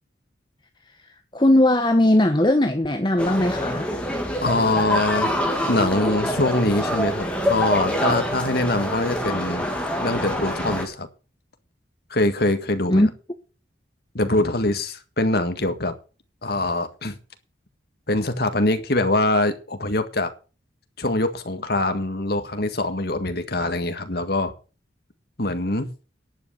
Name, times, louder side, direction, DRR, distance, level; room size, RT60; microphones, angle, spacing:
voice 1, 0.9-3.9 12.9-13.1, left 1 dB, 25° left, 6 dB, 1.1 m, -19 dB
sound 1, 3.2-10.8, equal, 5° left, 2.6 m, -26 dB
voice 2, 4.4-5.3 5.7-9.7 10.0-11.1 12.1-13.1 14.1-15.9 16.4-17.2 18.1-20.3 21.0-24.5 25.4-25.9, left 2 dB, 55° left, 8 dB, 1.8 m, -23 dB
11.0 x 8.1 x 6.9 m, 0.35 s
head